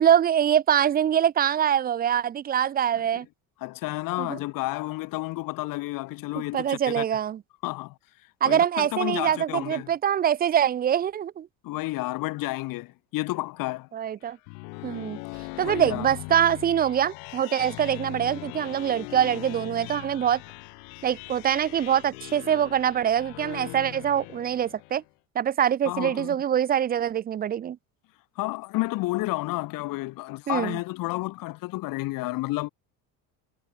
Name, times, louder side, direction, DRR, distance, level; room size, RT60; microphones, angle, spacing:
voice 1, 0.0-3.3 4.2-4.4 6.5-7.4 8.4-11.5 13.9-14.4 14.8-15.2 15.6-20.4 21.0-25.0 25.4-27.8 30.5-30.8, right 9 dB, 25° right, 0.5 m, -24 dB
voice 2, 3.6-7.0 7.6-8.0 8.4-9.9 11.6-13.9 15.6-16.1 25.8-26.4 28.4-32.7, left 20 dB, 60° left, 2.2 m, -31 dB
sound 1, 14.2-25.1, left 40 dB or more, 80° left, 1.1 m, -40 dB
cardioid pair, 130°, 37 cm